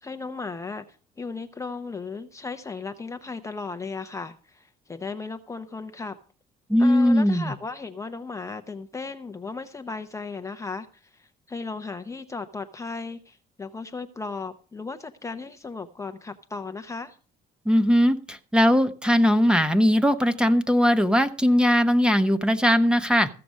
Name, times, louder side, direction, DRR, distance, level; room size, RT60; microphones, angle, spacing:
voice 1, 0.0-0.8 1.2-6.2 6.8-17.2, left 4 dB, 20° left, 7 dB, 0.7 m, -36 dB
voice 2, 6.7-7.5 17.6-23.3, equal, 5° right, 12 dB, 1.0 m, -20 dB
15.0 x 6.8 x 6.3 m, 0.38 s
cardioid pair, 110°, 17 cm